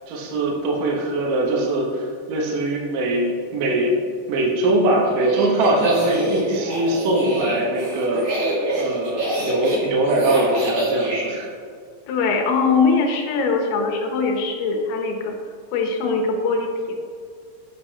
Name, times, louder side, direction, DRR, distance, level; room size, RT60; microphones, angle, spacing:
voice 1, 0.1-4.0 4.3-11.5, right 1 dB, 65° right, -1 dB, 2.3 m, -22 dB
sound 1, 5.1-11.3, right 2 dB, 50° right, 2.1 m, -26 dB
voice 2, 12.1-15.4 15.7-17.0, left 4 dB, 75° left, 3 dB, 2.7 m, -21 dB
8.3 x 7.5 x 2.8 m, 2.2 s
omnidirectional pair, 5.0 m